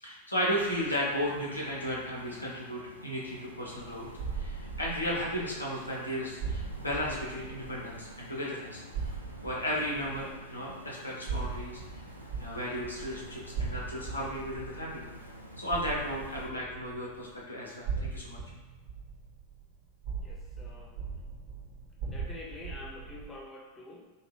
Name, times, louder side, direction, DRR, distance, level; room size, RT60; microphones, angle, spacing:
voice 1, 0.0-8.8 9.4-11.8 12.4-15.0 15.6-18.4, equal, 85° left, -5 dB, 0.7 m, -34 dB
sound 1, 0.5-16.5, equal, 90° right, 0.4 m, -49 dB
sound 2, 3.8-8.5 8.9-17.4 17.8-23.3, right 5 dB, 55° right, 0.7 m, -40 dB
voice 2, 20.2-21.0 22.0-24.0, left 2 dB, 20° left, -2 dB, 0.5 m, -46 dB
3.2 x 2.5 x 2.9 m, 1.2 s
figure-of-eight pair, 90°, 0 cm